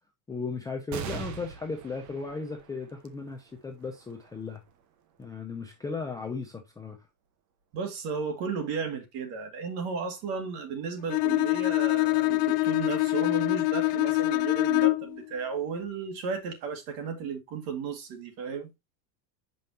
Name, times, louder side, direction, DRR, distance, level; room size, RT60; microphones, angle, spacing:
voice 1, 0.3-4.6 5.2-7.0, left 4 dB, 10° left, 0.4 m, -36 dB
sound 1, 0.9-7.8 8.4-8.5 9.6-10.2, right 7 dB, 35° right, 0.9 m, -45 dB
voice 2, 7.7-18.7, right 5 dB, 50° right, 2.1 m, -34 dB
Bowed string instrument, 11.1-15.2, left 22 dB, 75° left, 0.6 m, -25 dB
6.7 x 5.4 x 2.8 m
supercardioid pair, 155°, 49 cm